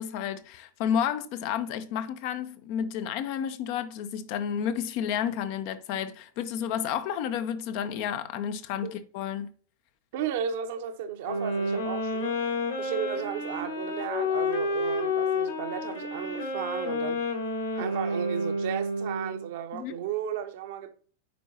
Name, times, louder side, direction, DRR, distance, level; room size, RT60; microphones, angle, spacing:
voice 1, 0.0-9.5 19.7-20.0, left 8 dB, 45° left, 0.7 m, -31 dB
voice 2, 10.1-12.2 12.8-17.2 17.7-20.9, right 9 dB, 50° right, 1.0 m, -34 dB
sound 1, 11.2-19.4, left 2 dB, 70° left, 2.5 m, -30 dB
9.5 x 4.5 x 2.8 m
figure-of-eight pair, 90°, 0 cm